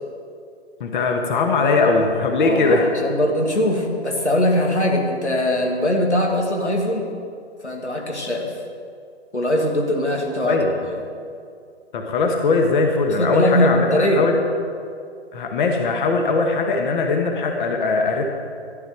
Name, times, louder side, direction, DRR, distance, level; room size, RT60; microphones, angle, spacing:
voice 1, 0.8-2.9 10.4-10.7 11.9-14.3 15.3-18.2, left 3 dB, 45° left, 3 dB, 1.5 m, -20 dB
voice 2, 2.4-7.1 7.6-8.5 9.3-10.6 10.8-11.0 13.2-14.3, left 1 dB, 90° left, 1 dB, 2.2 m, -21 dB
14.0 x 10.5 x 4.7 m, 2.4 s
figure-of-eight pair, 125°, 33 cm